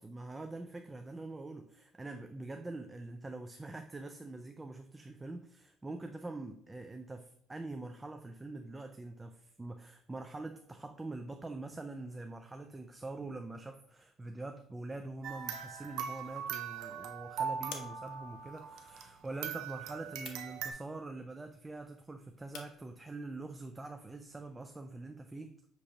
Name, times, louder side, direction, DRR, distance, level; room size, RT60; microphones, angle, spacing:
voice 1, 0.0-25.7, right 2 dB, 15° right, 6 dB, 0.3 m, -44 dB
sound 1, 15.2-19.1 19.4-20.7, right 7 dB, 75° right, 0.6 m, -40 dB
sound 2, 15.6-24.8, left 6 dB, 75° left, 0.6 m, -56 dB
6.4 x 2.9 x 2.7 m, 0.67 s
cardioid pair, 105°, 0 cm